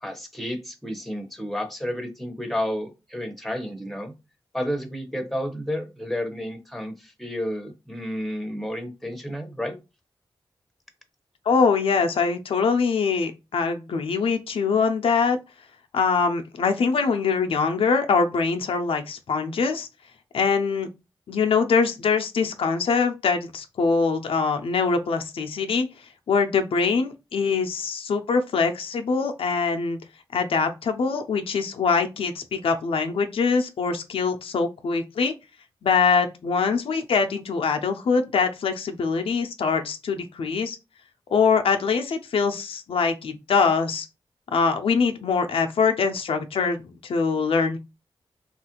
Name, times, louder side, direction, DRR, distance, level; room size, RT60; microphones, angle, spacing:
voice 1, 0.0-4.1 4.5-9.8, equal, ahead, 0.7 m, -31 dB
voice 2, 11.5-15.4 15.9-19.9 20.3-20.9 21.3-25.9 26.3-30.0 30.3-35.3 35.8-40.8 41.3-44.1 44.5-47.8, left 5 dB, 85° left, 0.4 m, -23 dB
3.0 x 2.4 x 2.9 m
cardioid pair, 65°, 9 cm